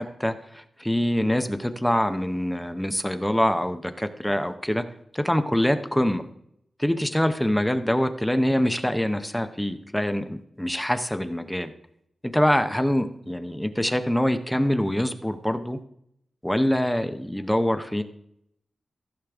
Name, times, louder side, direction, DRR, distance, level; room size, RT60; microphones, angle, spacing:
voice 1, 0.0-4.8 5.1-6.2 6.8-11.7 12.2-15.8 16.4-18.0, equal, 5° left, 9 dB, 0.7 m, -24 dB
15.0 x 6.5 x 3.5 m, 0.74 s
wide cardioid pair, 115°, 0 cm